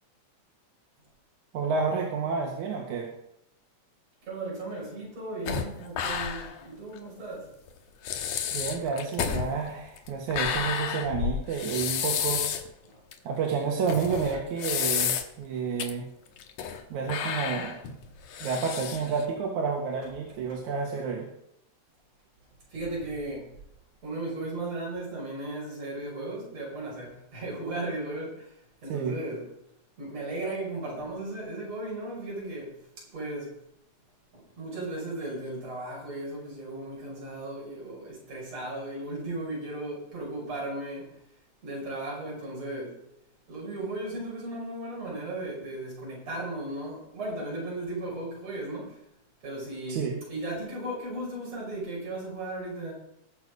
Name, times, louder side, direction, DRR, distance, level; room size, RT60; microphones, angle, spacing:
voice 1, 1.5-3.1 8.5-12.4 13.2-16.1 16.9-17.8 18.4-21.3 28.9-29.2 49.9-50.2, right 5 dB, 85° right, 0 dB, 2.8 m, -30 dB
voice 2, 4.2-7.5 8.6-8.7 12.9-13.0 22.7-23.5 24.0-28.5 28.8-29.4 30.0-33.6 34.3-41.2 41.6-43.0 43.5-49.0 49.4-50.0 50.3-52.9, right 2 dB, 60° right, -4 dB, 6.7 m, -36 dB
sound 1, 5.5-6.6 6.9-7.0 7.7-7.8 8.0-12.7 13.1-13.2 13.9-15.4 15.8-15.9 16.4-16.8 17.1-19.2, left 8 dB, 75° left, 2.3 m, -31 dB
19.5 x 6.9 x 5.0 m, 0.79 s
omnidirectional pair, 3.3 m